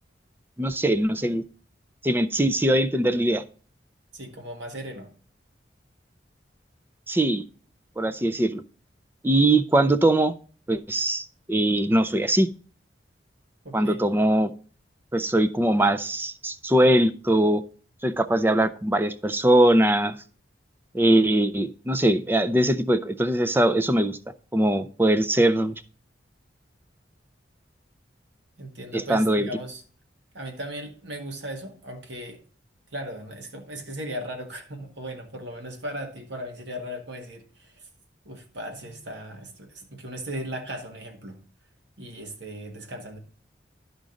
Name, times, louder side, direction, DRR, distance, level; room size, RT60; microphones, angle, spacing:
voice 1, 0.6-1.4 2.0-3.4 7.1-7.4 8.0-8.6 9.2-10.3 10.7-12.5 13.7-14.5 15.1-17.6 18.0-20.2 20.9-24.2 24.5-25.8 28.9-29.5, right 1 dB, 10° right, 0.4 m, -21 dB
voice 2, 4.1-5.1 13.6-14.1 28.6-29.8 30.3-32.4 32.9-37.9 38.3-41.4 42.0-43.2, equal, 75° right, 1.7 m, -37 dB
12.0 x 5.1 x 3.8 m
head